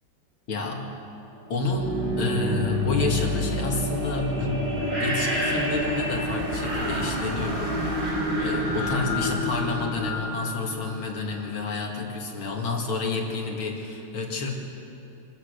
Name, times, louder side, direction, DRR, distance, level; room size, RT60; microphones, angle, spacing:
voice 1, 0.5-0.9 1.5-14.5, left 3 dB, 80° left, 0 dB, 3.1 m, -30 dB
sound 1, 1.5-11.4, left 1 dB, 60° right, 5.8 m, -28 dB
sound 2, 2.7-9.4, right 2 dB, 30° right, 1.7 m, -37 dB
26.5 x 15.0 x 6.7 m, 2.8 s
omnidirectional pair, 2.3 m